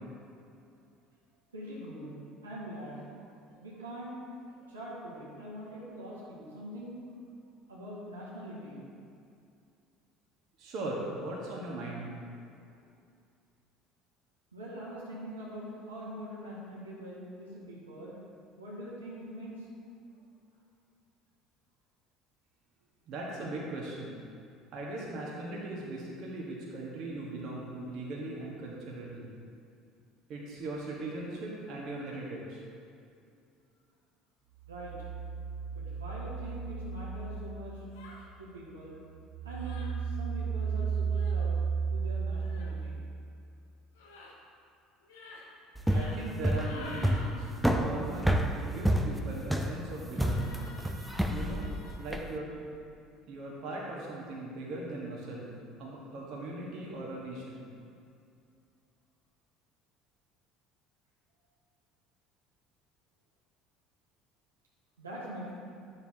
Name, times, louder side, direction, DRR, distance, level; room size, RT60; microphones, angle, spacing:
voice 1, 1.5-2.1 2.4-3.2 3.5-4.2 4.5-7.0 7.7-8.8 14.5-18.2 18.6-19.7 34.6-34.9 35.7-37.8 38.4-39.0 39.4-41.6 41.9-43.0 65.0-65.5, equal, 85° right, -7 dB, 1.7 m, -43 dB
voice 2, 10.6-12.1 23.1-24.2 24.7-29.4 30.3-32.6 45.9-47.5 47.8-50.6 51.2-51.7 52.0-52.5 53.3-55.5 55.8-57.6, right 2 dB, 55° right, -4 dB, 1.5 m, -39 dB
sound 1, 34.6-38.5 38.9-43.4, right 5 dB, 70° right, 0.5 m, -34 dB
sound 2, 37.9-38.3 39.5-39.9 41.1-41.4 42.4-42.7 43.9-44.3 45.0-45.4 45.8-46.2 46.4-47.3 50.1-52.0, left 2 dB, 75° left, 1.1 m, -49 dB
sound 3, 45.8-52.3, equal, 5° right, 0.7 m, -29 dB
10.0 x 6.9 x 2.9 m, 2.4 s
figure-of-eight pair, 60°, 0 cm